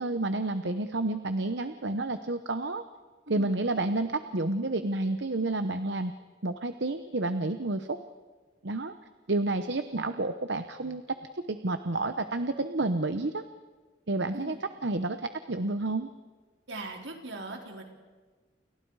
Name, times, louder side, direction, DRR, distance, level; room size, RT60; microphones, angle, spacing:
voice 1, 0.0-2.8 3.3-6.1 6.4-8.0 8.6-8.9 9.3-13.4 14.1-16.1, right 2 dB, 70° right, 9 dB, 1.0 m, -30 dB
voice 2, 16.7-17.8, right 2 dB, 85° right, 2 dB, 4.1 m, -40 dB
29.5 x 29.0 x 4.9 m, 1.4 s
head